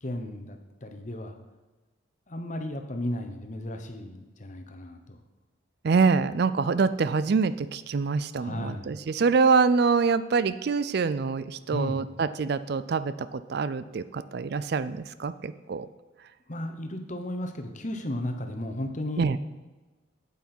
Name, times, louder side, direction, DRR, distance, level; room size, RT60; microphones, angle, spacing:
voice 1, 0.0-1.3 2.3-5.2 8.4-8.9 11.7-12.1 16.5-19.3, left 1 dB, 40° left, 6 dB, 1.0 m, -34 dB
voice 2, 5.8-15.9 19.2-19.4, right 4 dB, 55° right, 14 dB, 0.4 m, -25 dB
9.0 x 8.3 x 4.4 m, 1.2 s
head